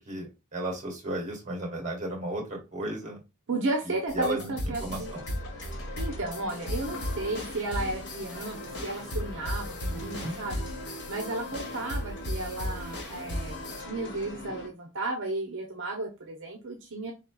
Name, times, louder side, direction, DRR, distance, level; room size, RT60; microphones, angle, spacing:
voice 1, 0.1-3.2 3.9-4.5 4.8-5.2 9.9-10.3, right 1 dB, 35° right, 1 dB, 1.9 m, -34 dB
voice 2, 3.5-5.1 5.7-10.6 11.1-17.1, right 2 dB, 60° right, 2 dB, 0.8 m, -34 dB
sound 1, 4.1-13.8, left 1 dB, 70° left, 2.1 m, -36 dB
sound 2, 5.0-14.7, left 1 dB, 55° left, 1.2 m, -42 dB
4.8 x 4.1 x 2.3 m, 0.27 s
head